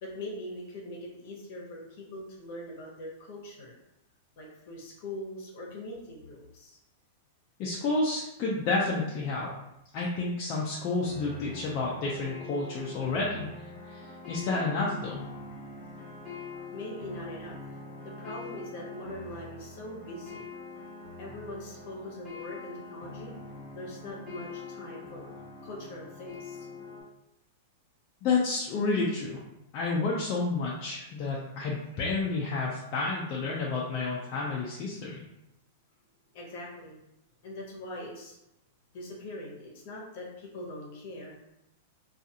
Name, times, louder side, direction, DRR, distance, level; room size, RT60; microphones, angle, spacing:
voice 1, 0.0-3.7 4.4-6.8 16.7-17.8 18.0-20.4 21.2-23.3 23.7-25.3 25.6-26.7 36.3-37.0 37.4-38.4 38.9-41.4, left 1 dB, 50° left, -2 dB, 0.9 m, -42 dB
voice 2, 7.6-9.5 9.9-13.5 13.8-15.2 28.2-29.4 29.7-35.2, left 3 dB, 35° left, -4 dB, 0.4 m, -30 dB
sound 1, 11.0-27.0, left 3 dB, 15° left, 1.1 m, -44 dB
2.4 x 2.4 x 2.8 m, 0.86 s
supercardioid pair, 160°, 0 cm